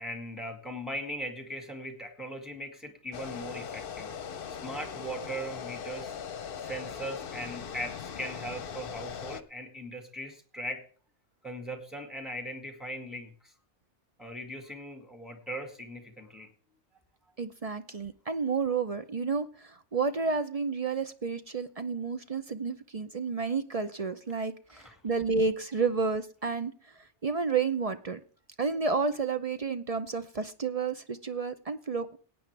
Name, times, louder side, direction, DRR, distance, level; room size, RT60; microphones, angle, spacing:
voice 1, 0.0-4.1 4.5-6.1 6.6-10.8 11.4-13.5 14.2-16.5 24.7-24.9, equal, ahead, 4 dB, 2.1 m, -39 dB
sound 1, 3.1-9.4, left 7 dB, 55° left, 0.9 m, -40 dB
voice 2, 17.4-28.2 28.6-32.2, right 4 dB, 40° right, 10 dB, 0.6 m, -31 dB
18.0 x 8.7 x 3.3 m, 0.43 s
omnidirectional pair, 1.2 m